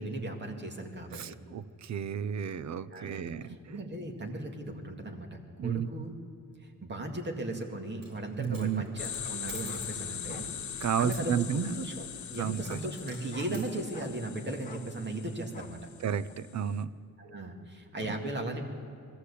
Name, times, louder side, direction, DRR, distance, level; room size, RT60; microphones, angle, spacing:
voice 1, 0.0-1.4 2.9-6.1 6.6-10.5 10.7-15.8 17.2-18.7, right 1 dB, 30° right, 3 dB, 2.1 m, -37 dB
voice 2, 1.1-3.5 5.6-5.9 8.4-8.8 10.8-11.8 12.4-12.8 13.5-13.6 16.0-16.9 18.0-18.1, right 8 dB, 55° right, 15 dB, 0.6 m, -32 dB
sound 1, 7.6-7.7 9.6-9.9 10.3-10.5 10.9-11.4 12.2-12.3 13.1-13.6 13.9-14.3 14.6-14.9 15.5-15.7 16.3-16.4, left 4 dB, 25° left, 1.2 m, -49 dB
Coin (dropping), 7.9-8.2 8.4-10.0 12.6-13.7, right 3 dB, 80° right, 4.2 m, -49 dB
sound 2, 9.0-16.7, left 8 dB, 60° left, 1.1 m, -41 dB
20.5 x 15.0 x 8.4 m, 2.5 s
wide cardioid pair, 175°, 33 cm